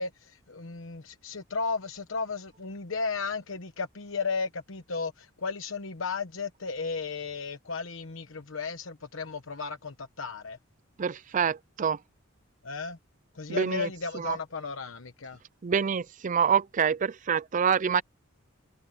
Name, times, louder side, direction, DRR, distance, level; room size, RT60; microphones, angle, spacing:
voice 1, 0.0-10.6 12.6-13.0 13.3-15.4, left 4 dB, 70° left, 1.1 m, -34 dB
voice 2, 11.0-12.0 13.5-13.9 14.1-14.4 15.6-18.0, right 7 dB, 40° right, 0.4 m, -26 dB
head